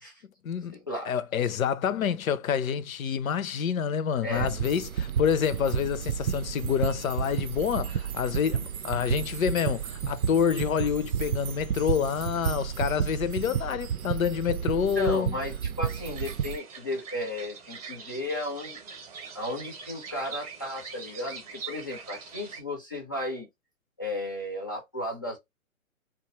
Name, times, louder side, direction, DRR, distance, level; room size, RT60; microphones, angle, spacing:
voice 1, 0.4-0.8 1.1-15.4, left 7 dB, 75° left, 0.5 m, -27 dB
voice 2, 4.2-4.6 15.0-18.8 19.3-23.5 24.0-25.4, left 1 dB, 15° left, 0.3 m, -34 dB
sound 1, 4.3-16.6, right 8 dB, 85° right, 0.6 m, -31 dB
sound 2, 15.8-22.6, right 5 dB, 25° right, 0.7 m, -43 dB
2.5 x 2.3 x 2.9 m
hypercardioid pair, 135°, 42 cm